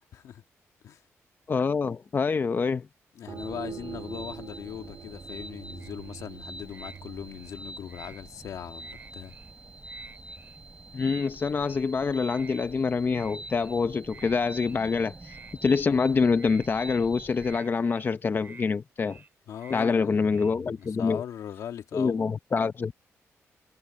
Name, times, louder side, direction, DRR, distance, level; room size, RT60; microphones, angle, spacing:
voice 1, 0.1-0.4 0.8-1.0 3.1-9.3 19.5-22.2, left 9 dB, 80° left, 1.7 m, -39 dB
voice 2, 1.5-2.9 10.9-19.2 19.7-21.2 21.9-22.9, left 5 dB, 40° left, 0.8 m, -26 dB
sound 1, 3.3-8.7, right 7 dB, 60° right, 2.1 m, -44 dB
sound 2, 3.4-17.6, right 2 dB, 20° right, 3.6 m, -45 dB
sound 3, 5.8-6.3 6.7-7.0 7.3-8.2 8.8-9.5 9.8-10.6 11.0-11.3 11.6-11.9 12.3-12.6 13.0-13.7 14.1-14.9 15.2-16.0 16.3-17.1 17.4-18.1 18.4-18.7 19.0-19.3 19.6-19.9 20.2-20.9, right 4 dB, 40° right, 4.6 m, -51 dB
cardioid pair, 95°, 5 cm